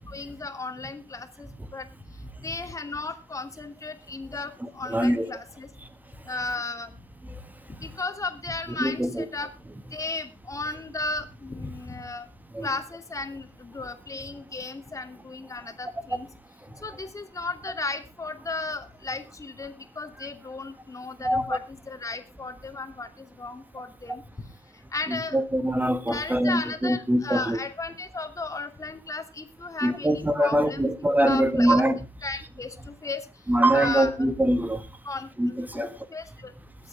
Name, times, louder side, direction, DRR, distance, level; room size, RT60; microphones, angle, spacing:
voice 1, 0.1-1.9 2.4-5.7 6.3-6.9 7.8-9.5 9.9-12.3 12.6-16.3 16.8-24.2 24.9-25.4 26.1-31.8 32.2-33.2 33.7-34.1 35.0-36.5, left 3 dB, 25° left, 7 dB, 2.8 m, -35 dB
voice 2, 4.6-5.3 8.8-9.2 12.5-12.7 20.2-20.3 21.2-21.6 25.1-27.6 29.8-32.0 33.5-34.8 35.4-35.9, right 1 dB, 15° right, 11 dB, 1.7 m, -23 dB
21.5 x 8.4 x 3.5 m, 0.27 s
hypercardioid pair, 55°, 13 cm